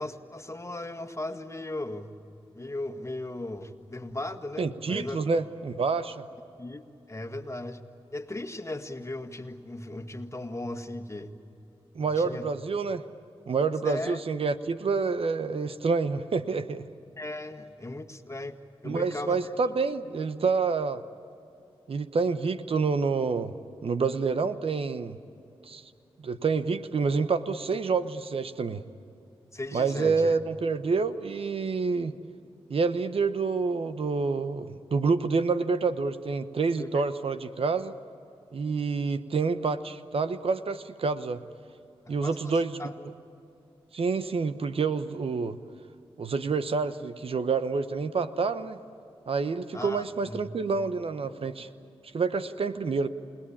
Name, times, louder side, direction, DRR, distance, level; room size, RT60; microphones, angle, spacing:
voice 1, 0.0-2.1 2.5-5.2 6.6-7.8 8.1-11.3 12.1-12.5 13.8-14.2 17.2-19.5 29.5-30.4 36.8-37.0 42.1-43.1 49.7-50.4, left 2 dB, 30° left, 6 dB, 1.8 m, -37 dB
voice 2, 4.6-6.3 11.9-13.0 13.5-16.9 18.8-21.0 21.9-23.5 23.8-25.2 25.7-25.8 26.2-28.8 29.7-32.1 32.7-37.9 38.5-41.4 42.1-42.9 43.9-45.6 46.2-48.8 49.3-51.7 52.1-53.1, right 4 dB, 70° right, 11 dB, 1.0 m, -28 dB
29.0 x 19.0 x 8.7 m, 2.7 s
cardioid pair, 45°, 10 cm